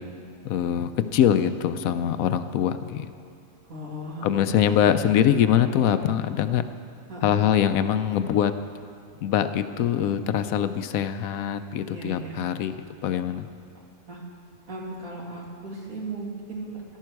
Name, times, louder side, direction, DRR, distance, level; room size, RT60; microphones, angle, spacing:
voice 1, 0.4-3.1 4.2-6.6 7.2-8.5 9.2-12.7 13.0-13.5, left 9 dB, 80° left, 11 dB, 1.0 m, -23 dB
voice 2, 3.7-4.8 7.1-7.3 11.8-12.4 14.1-14.2 14.7-17.0, right 2 dB, 75° right, -3 dB, 2.6 m, -37 dB
16.0 x 11.5 x 4.6 m, 2.5 s
omnidirectional pair, 1.5 m